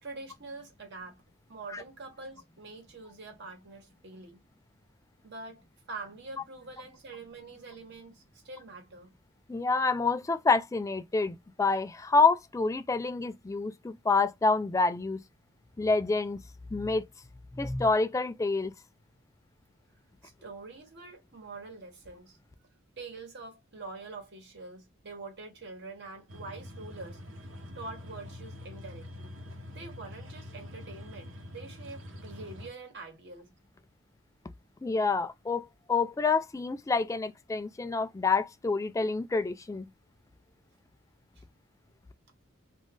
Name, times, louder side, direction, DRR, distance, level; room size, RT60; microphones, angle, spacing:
voice 1, 0.0-1.2 1.5-4.4 5.2-9.1 20.2-22.4 23.0-27.2 27.7-29.4 29.7-33.5, right 3 dB, 60° right, 1.2 m, -45 dB
voice 2, 9.5-15.2 15.8-16.4 16.7-17.1 17.5-18.7 34.8-39.9, left 4 dB, 15° left, 0.3 m, -27 dB
sound 1, 26.3-32.7, left 1 dB, 80° right, 1.0 m, -45 dB
2.6 x 2.4 x 3.4 m
head